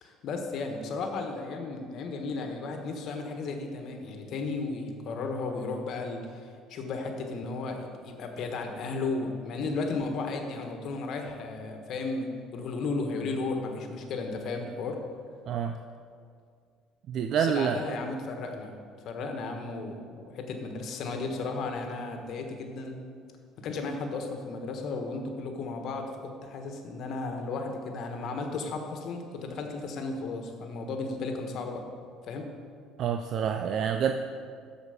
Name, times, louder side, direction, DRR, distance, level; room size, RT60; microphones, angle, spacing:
voice 1, 0.0-15.0 17.4-18.7 19.0-23.0 23.6-26.1 26.4-31.8 32.2-32.4, left 3 dB, 60° left, 4 dB, 1.3 m, -34 dB
voice 2, 17.1-17.8 33.0-34.1, right 8 dB, 60° right, 6 dB, 0.4 m, -27 dB
13.0 x 5.0 x 5.1 m, 2.2 s
supercardioid pair, 80°, 0 cm